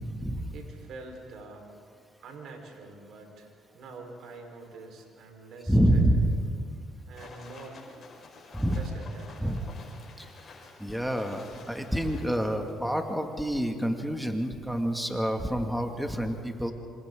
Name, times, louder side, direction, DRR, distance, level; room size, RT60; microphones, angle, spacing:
voice 1, 0.5-1.7 2.2-6.0 7.1-8.1 8.7-9.7, right 3 dB, 65° right, 3 dB, 4.6 m, -46 dB
voice 2, 5.7-6.4 8.5-8.8 9.4-9.6 10.8-16.7, right 1 dB, 5° right, 4 dB, 2.4 m, -27 dB
sound 1, 7.1-12.7, left 4 dB, 45° left, 5.7 m, -50 dB
27.0 x 26.5 x 4.0 m, 2.3 s
supercardioid pair, 65°, 0 cm